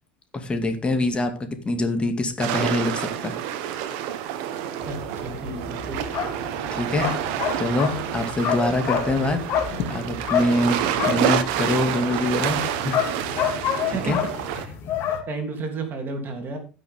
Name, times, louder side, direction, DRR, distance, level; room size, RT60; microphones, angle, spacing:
voice 1, 0.3-3.4 6.7-7.1 7.6-9.4 9.9-10.8 11.1-13.3 13.9-14.2, left 2 dB, 20° left, 6 dB, 2.5 m, -25 dB
sound 1, 2.4-14.7, right 10 dB, 60° right, 1.3 m, -28 dB
sound 2, 4.8-15.2, left 8 dB, 50° left, 2.0 m, -29 dB
voice 2, 5.2-6.0 13.9-14.1 14.4-14.7 15.3-16.6, right 4 dB, 40° right, 4 dB, 3.0 m, -32 dB
16.0 x 6.3 x 3.8 m, 0.33 s
hypercardioid pair, 75°, 5 cm